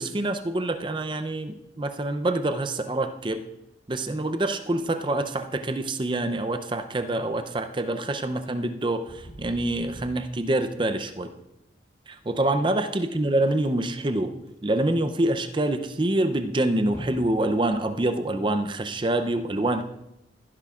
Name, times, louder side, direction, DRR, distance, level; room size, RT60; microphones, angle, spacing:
voice 1, 0.0-3.4 3.9-11.3 12.1-14.3 14.6-19.8, right 1 dB, 25° right, 8 dB, 0.5 m, -26 dB
sound 1, 9.1-17.9, equal, 20° left, 2.6 m, -45 dB
16.0 x 10.0 x 2.4 m, 0.88 s
head